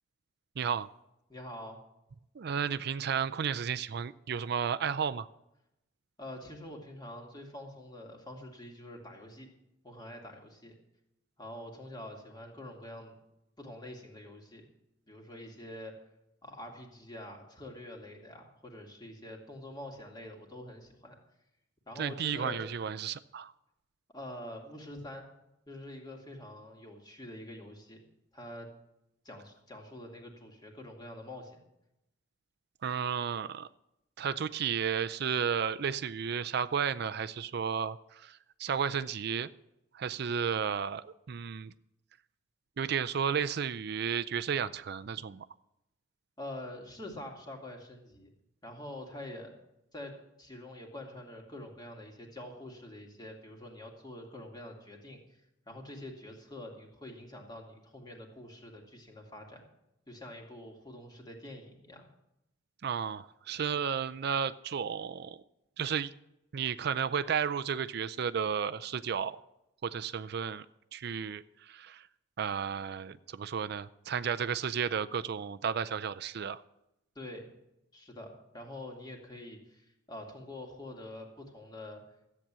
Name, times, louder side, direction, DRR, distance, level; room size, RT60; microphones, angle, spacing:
voice 1, 0.6-0.9 2.3-5.3 22.0-23.5 32.8-33.7 34.2-39.5 39.9-41.7 42.8-45.5 62.8-65.4 65.8-66.1 66.5-69.4 69.8-70.7 70.9-72.1 72.4-76.6, right 7 dB, 55° right, 14 dB, 0.4 m, -33 dB
voice 2, 1.3-1.8 6.2-9.5 9.8-10.8 11.4-13.1 13.6-14.6 15.1-15.9 16.4-21.2 21.9-22.7 24.1-25.2 25.7-28.0 28.3-28.7 29.2-31.6 46.4-48.3 48.6-49.5 49.9-50.1 50.4-55.4 55.7-59.6 60.1-62.1 77.2-77.5 77.9-82.0, left 1 dB, 20° left, 1 dB, 2.4 m, -46 dB
13.5 x 8.6 x 7.5 m, 0.85 s
head